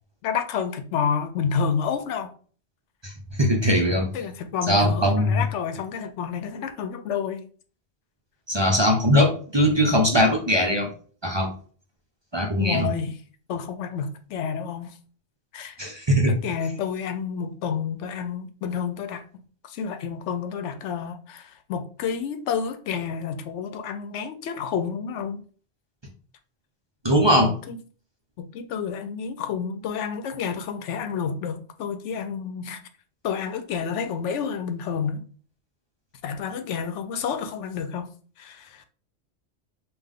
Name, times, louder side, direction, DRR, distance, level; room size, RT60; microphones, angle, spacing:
voice 1, 0.2-2.3 4.1-7.5 12.6-13.2 13.5-14.9 15.5-15.8 16.3-25.4 27.7-27.8 28.4-32.8 33.2-35.2 36.2-38.1 38.4-38.8, left 6 dB, 80° left, 0.9 m, -29 dB
voice 2, 3.4-4.1 4.7-5.4 8.5-10.9 11.2-11.5 12.3-12.9 15.8-16.4 27.0-27.5, equal, 30° right, 0.7 m, -20 dB
5.5 x 2.5 x 3.6 m
omnidirectional pair, 1.2 m